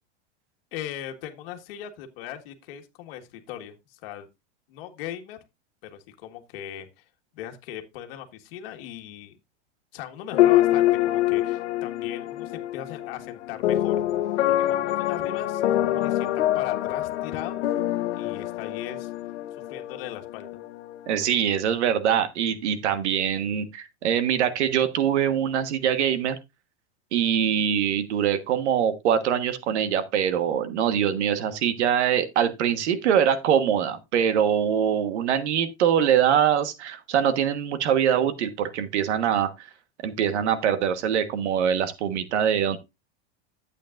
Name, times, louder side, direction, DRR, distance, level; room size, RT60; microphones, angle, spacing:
voice 1, 0.7-4.3 4.7-5.4 5.8-7.0 7.3-9.4 9.9-14.0 14.5-17.6 18.1-19.1 19.7-20.6, left 11 dB, 60° left, 1.6 m, -39 dB
sound 1, 10.3-21.4, left 14 dB, 90° left, 1.0 m, -25 dB
voice 2, 21.1-26.4 27.1-39.7 40.0-42.8, right 9 dB, 80° right, 1.4 m, -23 dB
11.5 x 8.4 x 2.5 m
supercardioid pair, 160°, 33 cm